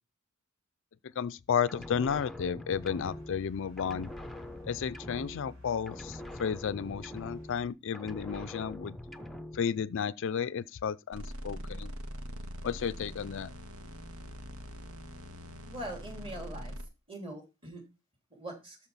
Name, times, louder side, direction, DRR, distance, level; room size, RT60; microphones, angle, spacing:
voice 1, 1.2-4.1 4.6-9.0 9.5-11.9 12.6-13.5, left 7 dB, 60° left, 0.4 m, -33 dB
sound 1, 1.7-3.5 3.8-5.6 5.9-7.7 7.9-9.6, left 1 dB, ahead, 0.7 m, -44 dB
sound 2, 2.7-7.7, left 2 dB, 60° right, 4.7 m, -52 dB
sound 3, 11.1-16.8, equal, 80° right, 1.7 m, -43 dB
voice 2, 15.7-16.7 17.1-17.8 18.3-18.8, right 1 dB, 25° right, 3.2 m, -42 dB
12.5 x 4.4 x 5.6 m
head